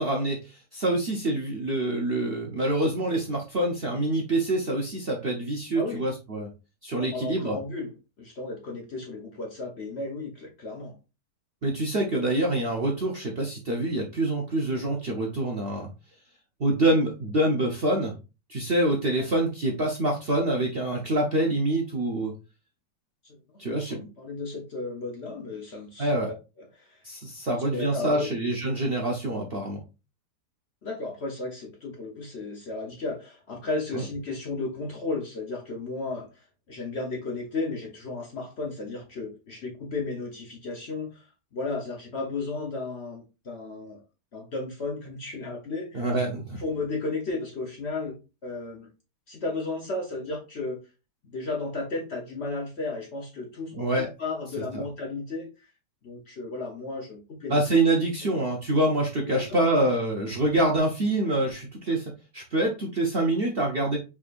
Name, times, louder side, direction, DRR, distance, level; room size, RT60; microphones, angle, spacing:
voice 1, 0.0-6.5 6.8-7.6 11.6-15.9 16.6-18.1 18.5-22.3 23.6-24.0 26.0-26.3 27.0-29.8 33.9-34.0 45.9-46.6 53.7-54.1 54.7-54.8 57.5-64.0, right 1 dB, 50° right, 0 dB, 0.7 m, -26 dB
voice 2, 6.9-11.0 23.2-27.0 27.5-28.3 30.8-41.3 41.5-44.0 44.3-46.1 46.6-48.2 48.4-48.9 49.3-50.8 51.3-55.7 56.0-57.6 58.2-58.3 59.3-59.7, left 3 dB, 50° left, 1 dB, 0.8 m, -34 dB
5.0 x 3.4 x 2.4 m, 0.29 s
omnidirectional pair, 1.8 m